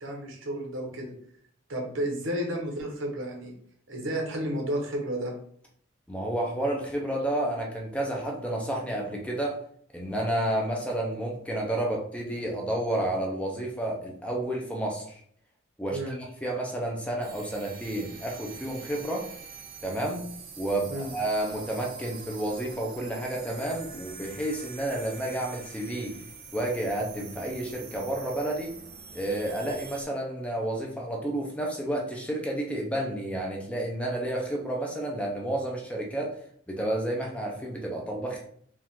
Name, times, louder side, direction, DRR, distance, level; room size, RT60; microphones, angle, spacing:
voice 1, 0.0-1.1 1.7-3.5 3.9-5.3 15.9-16.2 20.9-21.1, right 1 dB, 80° right, 1 dB, 1.1 m, -32 dB
voice 2, 6.1-9.6 9.9-15.2 15.8-16.1 16.4-19.3 19.8-20.3 20.6-26.2 26.5-28.7 29.1-36.4 36.7-38.4, right 1 dB, 5° left, -1 dB, 0.6 m, -30 dB
sound 1, 17.2-30.0, right 5 dB, 45° right, 0.6 m, -45 dB
4.7 x 2.5 x 3.7 m, 0.63 s
head